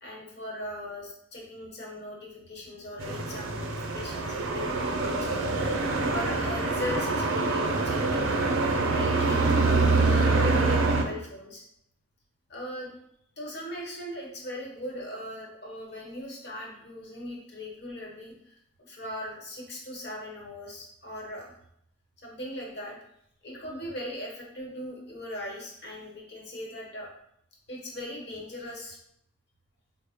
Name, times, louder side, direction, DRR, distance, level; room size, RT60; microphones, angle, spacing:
voice 1, 0.0-5.4 6.1-11.6 12.5-12.9 13.4-18.6 18.9-21.5 22.2-23.0 23.4-27.1 27.7-29.0, left 1 dB, 50° left, -2 dB, 1.0 m, -39 dB
sound 1, 3.0-11.0, right 3 dB, 75° right, 0.5 m, -25 dB
4.4 x 2.0 x 3.5 m, 0.74 s
head